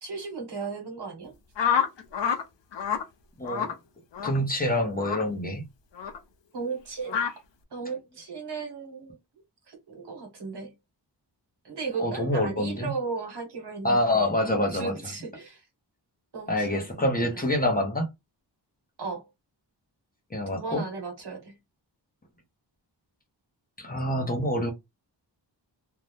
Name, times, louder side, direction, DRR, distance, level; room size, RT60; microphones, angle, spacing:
voice 1, 0.0-1.3 6.5-7.2 7.7-9.2 9.7-10.7 11.6-15.6 16.3-17.1 17.3-17.6 19.0-19.3 20.5-21.6, right 4 dB, 65° right, 1.3 m, -36 dB
sound 1, 1.6-2.4 2.7-3.0 3.5-3.7 4.1-4.4 5.0-5.2 6.0-6.2 7.1-7.3, left 7 dB, 75° left, 0.7 m, -27 dB
voice 2, 3.4-3.7 4.2-5.6 12.0-12.9 13.8-14.9 16.5-18.1 20.3-20.8 23.8-24.7, left 1 dB, 20° left, 0.7 m, -26 dB
2.6 x 2.2 x 3.3 m
wide cardioid pair, 125°, 43 cm